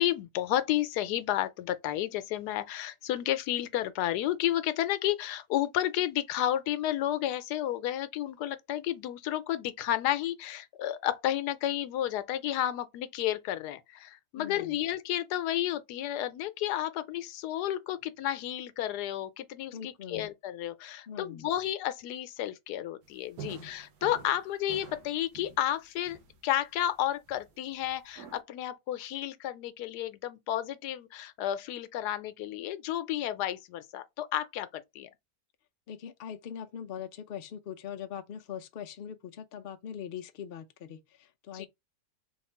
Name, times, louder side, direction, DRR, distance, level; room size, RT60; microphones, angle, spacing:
voice 1, 0.0-35.1 41.5-41.7, left 12 dB, 90° left, 1.2 m, -32 dB
voice 2, 14.4-14.8 19.7-20.3 21.1-21.5 23.4-23.7 35.9-41.7, left 8 dB, 70° left, 0.5 m, -42 dB
sound 1, 23.0-23.1 23.4-26.4 26.7-26.9 27.3-28.4, right 7 dB, 80° right, 1.4 m, -47 dB
3.5 x 2.3 x 4.3 m
omnidirectional pair, 1.7 m